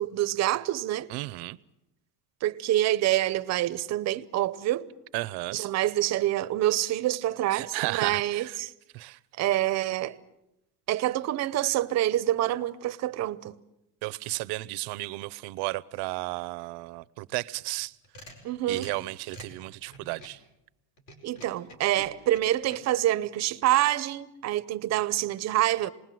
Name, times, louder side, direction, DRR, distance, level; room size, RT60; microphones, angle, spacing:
voice 1, 0.0-1.1 2.4-4.9 5.5-8.7 9.4-10.2 10.9-13.5 18.4-18.9 21.2-25.9, right 14 dB, 40° right, 0.8 m, -26 dB
voice 2, 1.1-1.6 5.1-5.7 7.5-8.6 8.9-9.2 14.0-17.9 18.7-20.4, right 21 dB, 75° right, 0.8 m, -34 dB
sound 1, 17.8-20.4 21.0-22.8, left 1 dB, 50° left, 4.9 m, -48 dB
27.0 x 20.0 x 7.6 m
cardioid pair, 165°, 40 cm